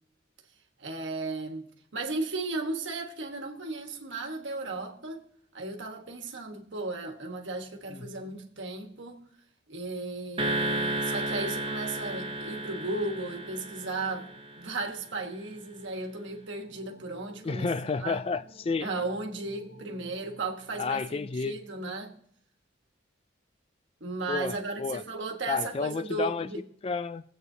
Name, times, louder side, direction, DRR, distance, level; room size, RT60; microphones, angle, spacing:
voice 1, 0.8-5.3 5.5-9.2 9.7-14.3 14.6-17.7 18.0-18.2 18.8-22.1 24.0-26.6, right 3 dB, 65° right, 1.4 m, -35 dB
sound 1, 10.4-14.9, right 1 dB, 25° right, 0.6 m, -33 dB
sound 2, 11.4-21.6, equal, 55° left, 3.6 m, -56 dB
voice 2, 17.4-18.9 20.8-21.6 24.3-25.0 25.5-26.5 26.8-27.2, left 4 dB, 30° left, 0.3 m, -31 dB
23.0 x 8.2 x 2.7 m
head